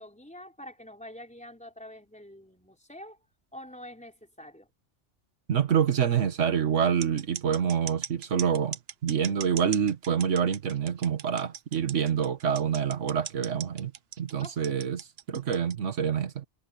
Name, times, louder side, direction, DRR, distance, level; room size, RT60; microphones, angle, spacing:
voice 1, 0.0-3.2 3.5-4.7 14.4-14.8, left 1 dB, 5° left, 4.3 m, -46 dB
voice 2, 5.5-8.8 9.0-13.9 14.2-16.4, right 7 dB, 85° right, 1.6 m, -27 dB
sound 1, 7.0-15.7, right 9 dB, 60° right, 0.9 m, -39 dB
omnidirectional pair, 1.2 m